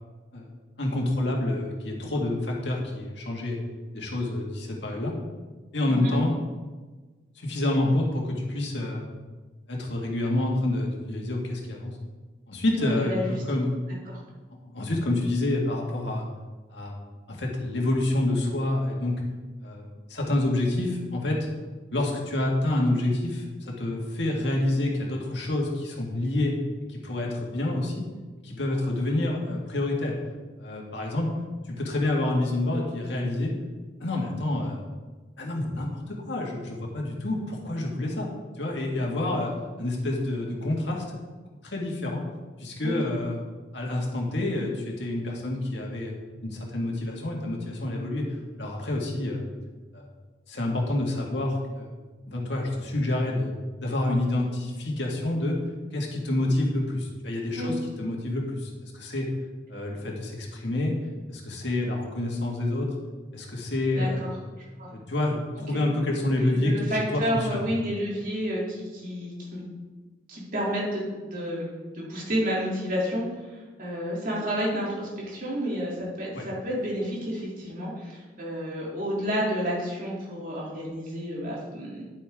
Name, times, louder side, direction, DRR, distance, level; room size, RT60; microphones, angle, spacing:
voice 1, 0.8-3.6 3.9-5.1 5.7-6.4 7.4-9.0 9.7-11.9 12.5-13.9 14.6-16.3 16.7-17.0 17.3-19.2 19.6-21.4 21.9-26.6 26.9-28.0 28.4-30.2 30.6-31.3 31.7-33.5 34.0-34.8 35.4-38.3 38.6-39.5 39.8-41.2 41.6-42.2 42.6-43.4 43.7-46.1 46.4-48.3 48.6-49.4 49.9-50.1 50.5-51.9 52.3-53.5 53.8-55.6 55.9-59.3 59.7-60.9 61.3-62.9 63.3-64.2 64.9-67.7 76.3-76.5, left 1 dB, 65° left, -1 dB, 2.0 m, -28 dB
voice 2, 12.8-13.4 14.1-14.2 42.8-43.0 57.5-57.7 63.9-64.3 64.8-64.9 65.7-65.8 66.4-69.6 70.3-71.7 71.9-73.2 73.8-82.0, equal, 50° right, -6 dB, 3.0 m, -30 dB
11.0 x 8.5 x 3.7 m, 1.3 s
head